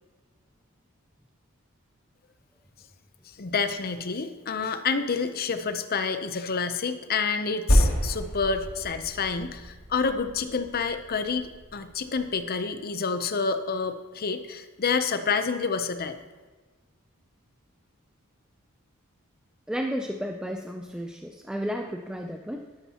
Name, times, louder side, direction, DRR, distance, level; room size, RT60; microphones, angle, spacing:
voice 1, 3.4-16.2, left 5 dB, 45° left, 9 dB, 0.7 m, -28 dB
Percussion, 7.7-12.5, equal, 85° left, 3.7 m, -29 dB
voice 2, 19.7-22.6, equal, 5° right, 2 dB, 0.4 m, -32 dB
12.5 x 11.0 x 2.9 m, 1.3 s
head